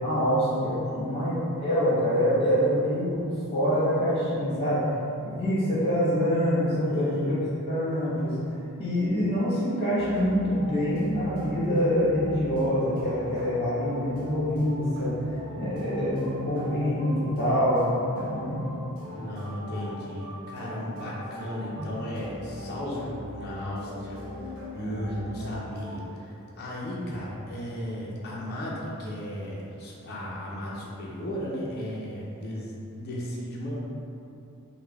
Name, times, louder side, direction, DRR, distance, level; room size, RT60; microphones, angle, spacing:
voice 1, 0.0-1.3 1.6-4.8 5.3-7.3 7.7-8.4 8.8-15.1 15.6-17.8 18.1-18.6 21.7-21.8 24.7-25.1, equal, 25° left, -10 dB, 1.0 m, -25 dB
voice 2, 0.8-1.2 6.9-7.4 19.1-33.8, left 1 dB, 45° left, -5 dB, 0.5 m, -36 dB
sound 1, 9.9-26.0, left 1 dB, 70° right, 0.6 m, -41 dB
3.2 x 2.2 x 3.5 m, 2.8 s
head